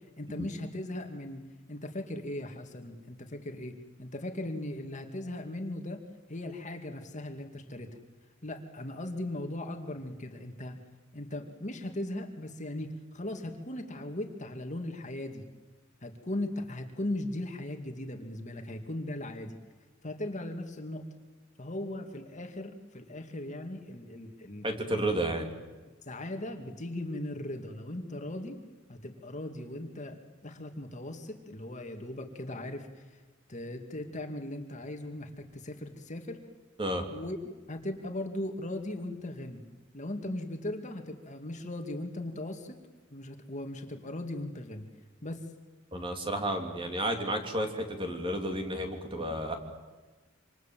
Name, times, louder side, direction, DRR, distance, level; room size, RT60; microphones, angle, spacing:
voice 1, 0.2-1.4 1.7-6.0 6.3-8.0 8.4-10.8 11.1-15.5 16.0-19.6 20.0-21.0 21.6-24.6 26.0-28.6 28.9-33.2 33.5-36.4 37.1-37.4 37.7-39.6 39.9-42.8 43.1-44.9 45.2-45.5, left 1 dB, 35° left, 5 dB, 2.3 m, -38 dB
voice 2, 24.6-25.5 36.8-37.1 45.9-49.6, right 1 dB, 25° right, 4 dB, 3.2 m, -31 dB
27.0 x 26.5 x 7.6 m, 1.3 s
head